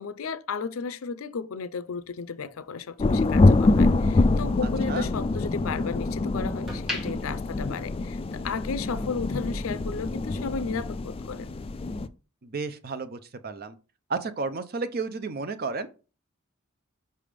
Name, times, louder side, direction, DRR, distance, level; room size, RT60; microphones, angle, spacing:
voice 1, 0.0-11.6, left 5 dB, 85° left, 0.5 m, -34 dB
sound 1, 1.8-4.2 4.6-6.0 6.4-8.6 8.9-9.1, left 1 dB, ahead, 1.6 m, -39 dB
sound 2, 3.0-12.1, left 2 dB, 25° left, 0.3 m, -25 dB
voice 2, 12.4-13.8 14.1-15.9, right 4 dB, 45° right, 0.6 m, -32 dB
5.5 x 3.5 x 5.0 m
head